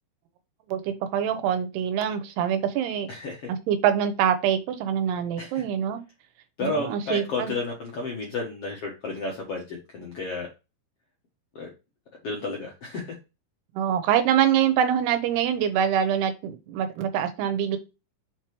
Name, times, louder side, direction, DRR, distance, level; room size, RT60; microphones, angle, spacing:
voice 1, 0.7-3.1 3.7-6.0 6.6-7.5 13.8-17.8, right 9 dB, 90° right, 9 dB, 3.0 m, -24 dB
voice 2, 6.6-10.5 11.5-11.7 12.2-13.1, left 3 dB, 65° left, -1 dB, 1.5 m, -32 dB
6.4 x 4.7 x 3.1 m, 0.27 s
omnidirectional pair, 4.6 m